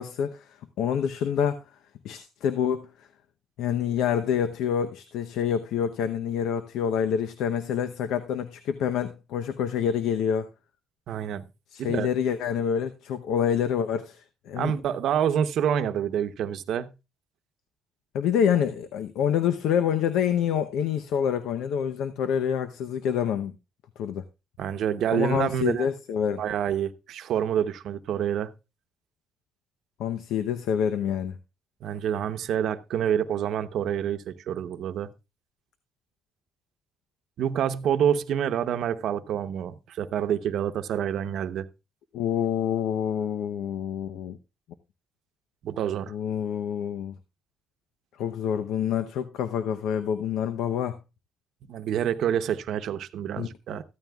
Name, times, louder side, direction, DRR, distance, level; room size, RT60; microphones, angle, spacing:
voice 1, 0.0-1.6 2.0-2.9 3.6-10.5 11.7-14.7 18.1-23.5 24.0-24.2 25.1-26.4 30.0-31.4 42.1-44.4 46.1-47.2 48.2-51.0 53.4-53.5, left 8 dB, 90° left, 0.8 m, -27 dB
voice 2, 11.1-11.5 11.8-12.1 14.6-16.9 24.6-25.9 26.4-28.5 31.8-35.1 37.4-41.7 45.6-46.1 51.7-53.8, right 9 dB, 75° right, 0.8 m, -27 dB
14.5 x 13.0 x 2.3 m
cardioid pair, 90°, 0 cm